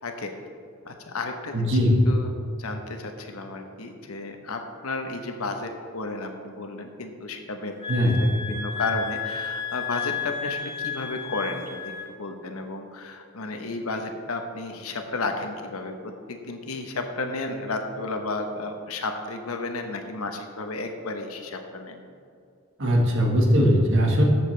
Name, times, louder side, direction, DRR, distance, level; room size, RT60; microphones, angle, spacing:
voice 1, 0.8-1.7 2.0-2.3 2.6-7.7 8.0-15.9 16.3-22.0, left 3 dB, 80° left, 5 dB, 1.0 m, -33 dB
voice 2, 1.5-2.0 7.9-8.2 22.8-24.2, equal, 60° right, -1 dB, 1.6 m, -20 dB
sound 1, 7.8-12.1, left 7 dB, 25° left, 1.2 m, -32 dB
13.5 x 7.2 x 3.3 m, 2.4 s
head